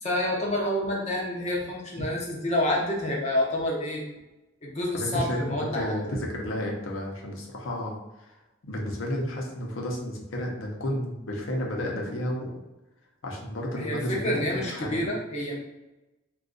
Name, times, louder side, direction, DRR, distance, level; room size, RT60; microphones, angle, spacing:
voice 1, 0.0-4.0 4.6-6.0 13.7-15.6, left 1 dB, 35° left, -3 dB, 0.6 m, -28 dB
voice 2, 4.9-8.0 8.7-12.5 13.2-15.1, equal, 75° left, -1 dB, 0.7 m, -32 dB
2.5 x 2.3 x 3.8 m, 1.0 s
head